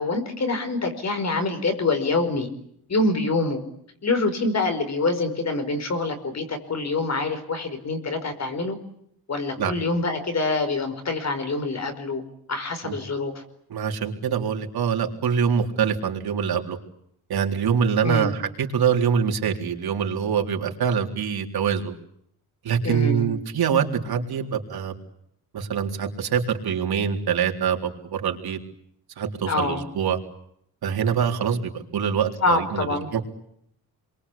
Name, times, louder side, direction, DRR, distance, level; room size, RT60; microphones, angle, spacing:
voice 1, 0.0-2.5 2.9-3.6 4.0-8.8 9.3-12.2 12.5-13.4 18.0-18.3 22.8-23.3 29.4-29.8 32.4-33.1, left 3 dB, 45° left, 8 dB, 5.1 m, -25 dB
voice 2, 13.7-16.8 17.3-22.0 22.6-24.9 25.5-28.6 29.2-30.2 30.8-33.2, right 7 dB, 75° right, 3 dB, 3.9 m, -24 dB
29.5 x 23.5 x 8.6 m, 0.70 s
wide cardioid pair, 155°, 38 cm